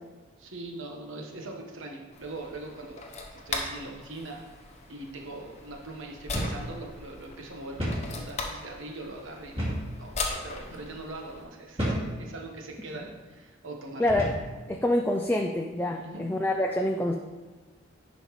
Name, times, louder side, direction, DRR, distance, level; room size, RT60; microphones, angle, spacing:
voice 1, 0.4-3.0 3.4-4.5 4.9-10.1 10.4-14.0 16.0-16.3, right 2 dB, 80° right, 1 dB, 1.2 m, -41 dB
sound 1, 2.1-11.4, left 3 dB, 35° left, 0.8 m, -39 dB
sound 2, 6.3-6.6 7.0-7.1 7.8-8.1 9.6-9.9 10.6-10.8 11.8-12.1 12.9-13.1 14.1-14.5, equal, 25° right, 2.1 m, -31 dB
voice 2, 14.0-14.4 14.7-17.1, left 1 dB, 10° left, 2 dB, 0.3 m, -26 dB
10.5 x 5.3 x 3.1 m, 1.3 s
head